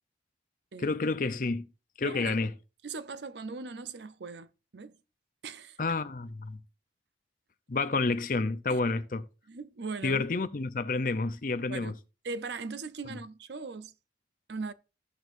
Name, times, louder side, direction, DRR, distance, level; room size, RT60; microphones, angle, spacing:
voice 1, 0.8-1.7 2.0-2.5 5.8-6.6 7.7-9.3 10.0-11.9, left 3 dB, 45° left, 0.6 m, -29 dB
voice 2, 2.0-2.5 2.8-5.0 5.4-5.8 8.7-8.8 9.5-10.3 11.7-12.0 12.2-13.9 14.5-14.7, right 4 dB, 70° right, 0.6 m, -39 dB
16.0 x 6.2 x 2.6 m
head